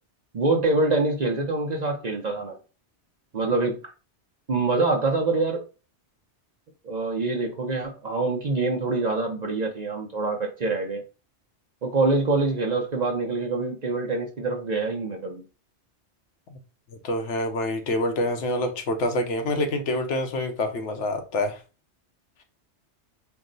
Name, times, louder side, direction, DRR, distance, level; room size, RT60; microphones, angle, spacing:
voice 1, 0.3-2.6 3.3-3.9 4.5-5.6 6.8-11.0 11.8-15.4, right 3 dB, 45° right, 0 dB, 0.6 m, -25 dB
voice 2, 17.0-21.6, left 1 dB, 80° left, 5 dB, 1.0 m, -26 dB
4.4 x 2.1 x 3.8 m, 0.33 s
omnidirectional pair, 1.2 m